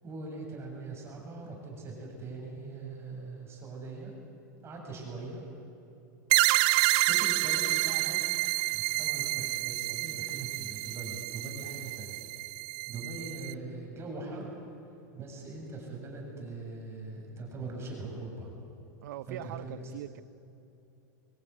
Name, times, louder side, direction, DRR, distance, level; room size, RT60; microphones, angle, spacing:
voice 1, 0.0-4.1 4.6-5.4 7.0-8.3 8.7-12.3 12.9-14.6 15.1-18.5 19.3-19.8, right 3 dB, 25° right, -1 dB, 7.5 m, -41 dB
sound 1, 6.3-13.5, right 24 dB, 55° right, 0.5 m, -29 dB
voice 2, 19.0-20.2, right 14 dB, 70° right, 17 dB, 0.8 m, -41 dB
23.0 x 17.5 x 9.3 m, 2.9 s
hypercardioid pair, 115°, 10 cm